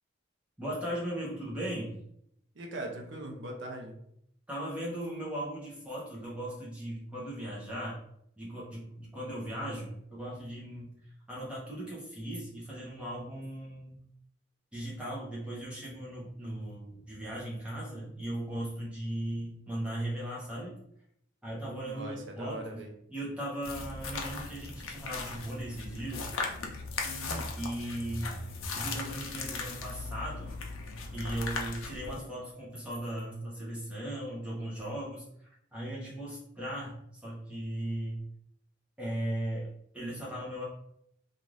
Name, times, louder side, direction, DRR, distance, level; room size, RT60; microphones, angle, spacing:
voice 1, 0.6-2.0 4.5-8.0 8.4-10.9 11.3-14.0 14.7-20.8 21.4-22.8 23.1-26.3 27.6-30.6 31.1-35.2 35.7-38.2 39.0-40.6, right 1 dB, 5° right, -6 dB, 0.7 m, -37 dB
voice 2, 2.5-3.9 21.8-22.9 27.0-27.5, right 1 dB, 60° right, 2 dB, 0.6 m, -40 dB
sound 1, 23.6-32.2, left 3 dB, 80° left, 0.5 m, -38 dB
2.5 x 2.4 x 3.1 m, 0.73 s
head